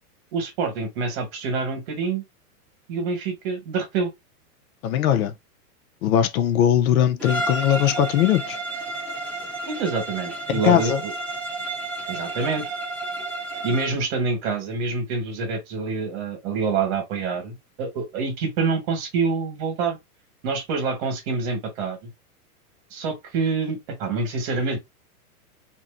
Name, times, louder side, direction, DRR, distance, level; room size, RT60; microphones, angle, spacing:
voice 1, 0.3-2.2 2.9-4.1 9.7-11.1 12.1-12.7 13.6-20.0 20.4-22.1 22.9-24.8, right 4 dB, 45° right, 1.6 m, -26 dB
voice 2, 4.8-5.3 6.0-8.6 10.5-11.0, left 10 dB, 65° left, 0.6 m, -20 dB
Bowed string instrument, 7.2-14.0, right 2 dB, 5° left, 1.2 m, -31 dB
2.8 x 2.5 x 2.5 m
hypercardioid pair, 140°, 45 cm